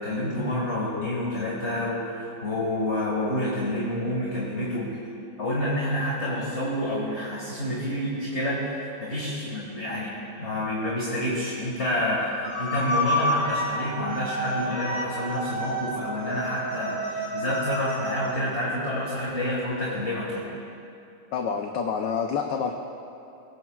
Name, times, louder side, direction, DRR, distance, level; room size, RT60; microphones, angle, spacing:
voice 1, 0.0-5.0 5.4-20.5, left 1 dB, 35° left, -5 dB, 2.1 m, -28 dB
sound 1, 12.4-18.3, equal, 15° right, 3.8 m, -29 dB
voice 2, 21.3-22.7, left 6 dB, 65° left, 3 dB, 1.3 m, -27 dB
21.5 x 18.0 x 2.4 m, 2.7 s
omnidirectional pair, 2.2 m